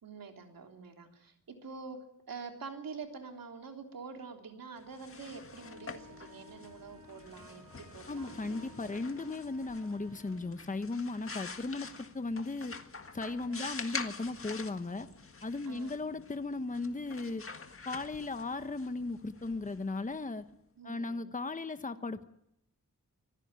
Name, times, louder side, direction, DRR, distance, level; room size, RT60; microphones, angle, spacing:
voice 1, 0.0-8.9 13.5-13.7 15.7-15.9 20.8-21.3, right 4 dB, 85° right, 4 dB, 3.5 m, -46 dB
sound 1, 4.8-20.5, left 4 dB, 40° left, 1.8 m, -46 dB
sound 2, 5.5-10.5, left 2 dB, 65° right, 6.2 m, -56 dB
voice 2, 8.1-12.7 13.1-15.1 15.4-17.4 17.8-20.4 20.8-22.2, left 3 dB, 25° left, 10 dB, 1.1 m, -36 dB
25.0 x 16.0 x 9.6 m, 0.77 s
wide cardioid pair, 105°, 33 cm